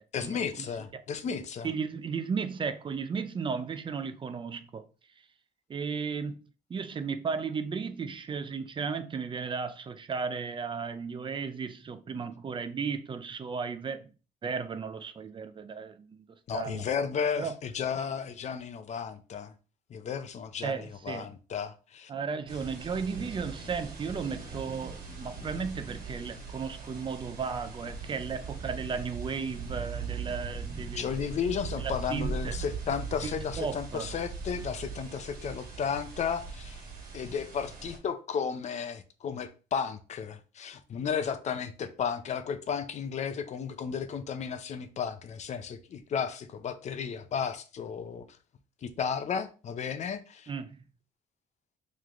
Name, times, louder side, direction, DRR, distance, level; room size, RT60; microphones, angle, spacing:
voice 1, 0.1-1.7 16.5-19.5 19.9-22.1 30.2-30.3 30.9-36.8 37.1-48.3 48.8-50.5, left 7 dB, 45° left, 0.6 m, -34 dB
voice 2, 1.6-4.9 5.7-6.4 6.7-14.1 14.4-16.2 16.5-16.8 17.4-17.6 20.6-21.3 22.1-31.1 31.8-32.5 33.2-34.1 50.5-50.8, right 5 dB, 30° right, 0.5 m, -35 dB
sound 1, 22.5-38.0, right 5 dB, 55° right, 1.5 m, -40 dB
3.2 x 3.2 x 3.7 m
cardioid pair, 110°, 17 cm